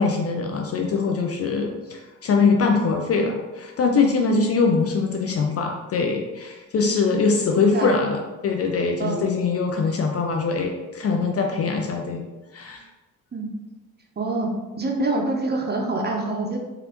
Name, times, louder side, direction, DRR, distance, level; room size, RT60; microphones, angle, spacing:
voice 1, 0.0-12.2 12.5-12.8, left 4 dB, 35° left, 3 dB, 0.4 m, -22 dB
voice 2, 7.5-7.9 9.0-9.2 11.6-11.7 13.3-13.5 14.2-14.5 14.8-16.6, right 2 dB, 25° right, 1 dB, 0.6 m, -26 dB
2.9 x 2.5 x 2.9 m, 1.1 s
hypercardioid pair, 45°, 44 cm